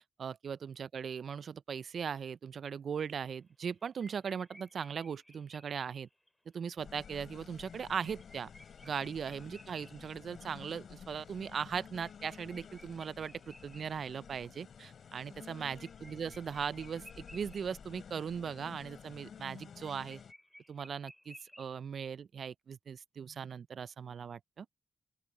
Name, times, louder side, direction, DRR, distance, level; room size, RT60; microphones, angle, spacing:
voice 1, 0.2-6.1 6.5-8.5 8.8-20.2 20.7-24.7, right 7 dB, 60° right, 0.4 m, -39 dB
sound 1, 3.5-3.7 4.0-6.3 6.9-7.0 7.3-7.4 7.7-14.6 15.0-17.9 18.1-18.2 18.5-21.8, left 1 dB, 5° left, 4.7 m, -58 dB
sound 2, 6.8-20.3, left 7 dB, 65° left, 5.9 m, -52 dB
open air
cardioid pair, 65°, 0 cm